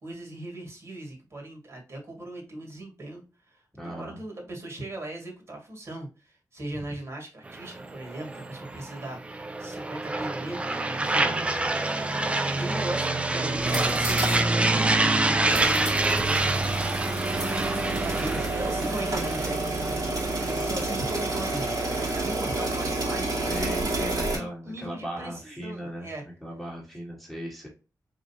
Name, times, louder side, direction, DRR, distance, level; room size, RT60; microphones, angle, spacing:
voice 1, 0.0-11.3 12.4-16.8 17.4-26.2, right 1 dB, 45° right, 0 dB, 2.1 m, -38 dB
voice 2, 3.7-4.2 11.2-11.8 16.1-16.2 23.5-26.1 26.4-27.7, equal, ahead, -3 dB, 1.6 m, -37 dB
sound 1, 7.5-22.3, right 2 dB, 15° right, 0.4 m, -27 dB
sound 2, 13.5-14.5 14.8-14.9 15.5-24.4, right 2 dB, 65° right, 2.5 m, -29 dB
4.7 x 3.9 x 2.8 m, 0.30 s
wide cardioid pair, 170°, 7 cm